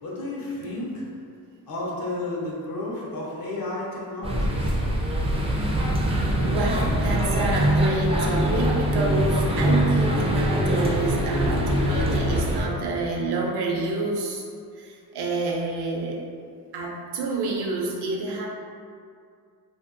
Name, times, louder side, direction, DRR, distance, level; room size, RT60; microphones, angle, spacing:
voice 1, 0.0-1.1 1.7-4.8, left 2 dB, 60° left, -4 dB, 0.8 m, -32 dB
sound 1, 4.2-12.6, equal, 15° right, 0.3 m, -23 dB
voice 2, 6.4-14.4 14.7-16.2 16.7-18.5, right 2 dB, 75° right, -1 dB, 0.5 m, -28 dB
2.5 x 2.2 x 2.4 m, 2.3 s
cardioid pair, 85°, 40 cm